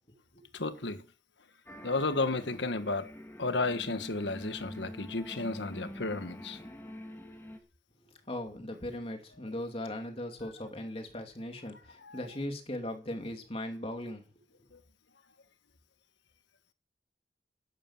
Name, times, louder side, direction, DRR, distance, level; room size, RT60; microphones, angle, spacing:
voice 1, 0.5-1.0 1.8-3.1 3.4-6.6 12.0-12.2, left 3 dB, 85° left, 1.5 m, -33 dB
sound 1, 1.7-7.6, equal, 15° left, 2.9 m, -46 dB
voice 2, 8.3-14.2, left 1 dB, 30° left, 2.8 m, -38 dB
12.0 x 11.5 x 7.4 m
head